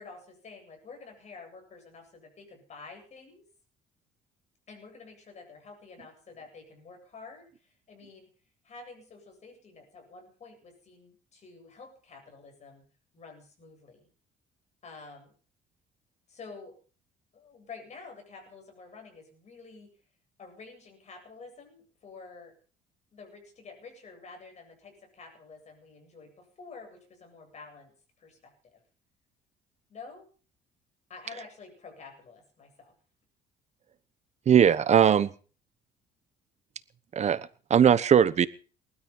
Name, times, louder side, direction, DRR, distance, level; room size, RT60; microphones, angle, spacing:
voice 1, 0.0-3.5 4.7-8.3 8.6-12.8 13.1-14.1 14.8-15.3 16.3-16.8 17.3-20.0 20.4-22.5 23.1-28.8 29.9-30.3 31.1-32.9, left 4 dB, 40° left, 4 dB, 7.9 m, -49 dB
voice 2, 34.5-35.3 37.1-37.4 37.7-38.5, right 8 dB, 40° right, 16 dB, 1.1 m, -19 dB
20.0 x 13.0 x 5.6 m, 0.39 s
cardioid pair, 110°, 17 cm